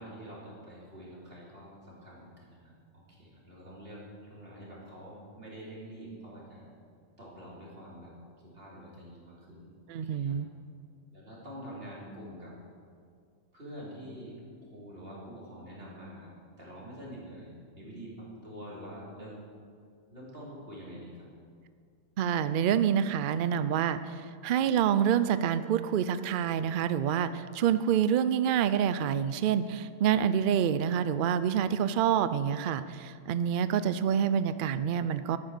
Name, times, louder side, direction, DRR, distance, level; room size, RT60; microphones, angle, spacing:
voice 1, 0.0-6.6 7.2-8.1 8.4-10.4 11.1-12.6 13.5-16.3 16.6-19.5 20.1-21.3, equal, 45° right, -6 dB, 3.9 m, -46 dB
voice 2, 9.9-10.5 22.2-35.4, right 8 dB, 80° right, 13 dB, 0.4 m, -27 dB
13.0 x 9.6 x 6.6 m, 2.2 s
omnidirectional pair, 1.4 m